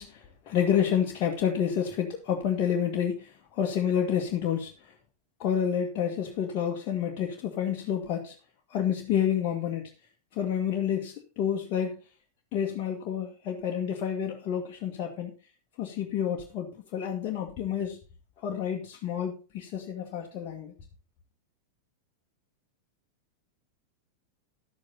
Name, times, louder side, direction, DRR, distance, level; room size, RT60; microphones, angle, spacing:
voice 1, 0.0-4.9 5.4-8.4 8.7-9.9 10.3-12.0 12.5-15.3 15.8-18.0 18.4-20.7, left 8 dB, 40° left, 1.9 m, -29 dB
12.0 x 8.6 x 4.0 m
figure-of-eight pair, 90°, 0 cm